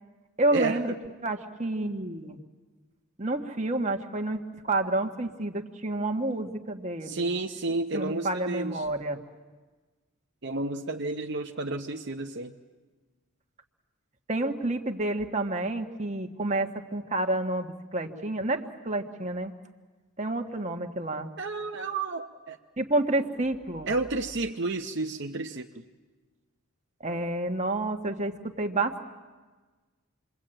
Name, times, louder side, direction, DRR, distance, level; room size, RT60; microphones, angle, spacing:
voice 1, 0.4-0.9 1.2-2.4 3.2-7.3 7.9-9.2 14.3-19.5 20.2-21.3 22.8-23.9 27.0-29.1, right 2 dB, 30° right, 5 dB, 1.5 m, -29 dB
voice 2, 7.0-8.8 10.4-12.5 21.4-22.6 23.9-25.8, right 3 dB, 55° right, 3 dB, 0.9 m, -31 dB
28.0 x 23.0 x 9.0 m, 1.3 s
head